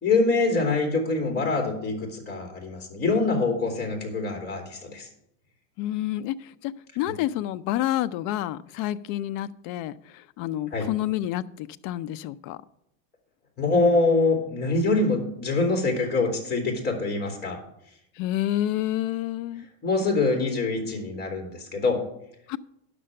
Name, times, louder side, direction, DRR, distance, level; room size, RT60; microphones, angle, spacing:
voice 1, 0.0-5.1 10.7-10.9 13.6-17.6 19.8-22.0, left 3 dB, 25° left, 3.0 m, -24 dB
voice 2, 5.8-12.6 18.2-19.6 22.5-22.6, left 13 dB, 45° left, 0.5 m, -29 dB
10.0 x 6.8 x 6.4 m
supercardioid pair, 140°, 42 cm